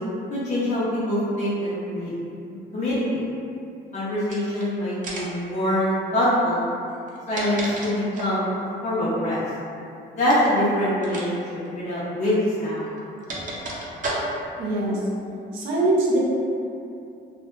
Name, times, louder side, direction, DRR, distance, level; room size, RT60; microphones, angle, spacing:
voice 1, 0.3-2.1 2.4-3.2 3.9-6.6 7.3-9.4 10.1-13.0, left 1 dB, 35° left, -9 dB, 0.5 m, -24 dB
sound 1, 4.2-4.6 5.0-5.4 6.9-8.4 10.2-10.5 11.0-11.3 11.5-11.7 12.6-14.6, right 1 dB, 40° right, 0.5 m, -32 dB
voice 2, 14.6-15.0 15.5-16.2, right 2 dB, 85° right, -5 dB, 0.6 m, -22 dB
2.1 x 2.1 x 2.9 m, 2.6 s
cardioid pair, 90°, 20 cm